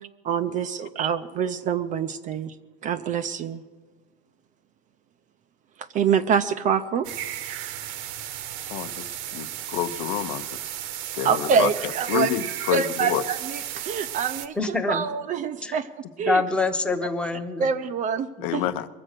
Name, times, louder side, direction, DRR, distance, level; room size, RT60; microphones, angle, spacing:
voice 1, 0.2-2.5 2.8-3.6 5.8-7.1 7.4-7.7 11.2-12.3 12.7-16.4 17.6-18.6, right 7 dB, 25° right, 11 dB, 0.4 m, -26 dB
sound 1, 7.0-14.5, right 12 dB, 60° right, 1.0 m, -34 dB
voice 2, 8.7-10.7 11.1-13.2 18.4-18.9, left 11 dB, 65° left, 12 dB, 0.8 m, -29 dB
voice 3, 14.6-15.1 15.6-15.8 16.2-17.7 18.4-18.5, left 3 dB, 5° left, 5 dB, 0.8 m, -26 dB
22.5 x 7.6 x 6.5 m, 1.3 s
supercardioid pair, 150°, 29 cm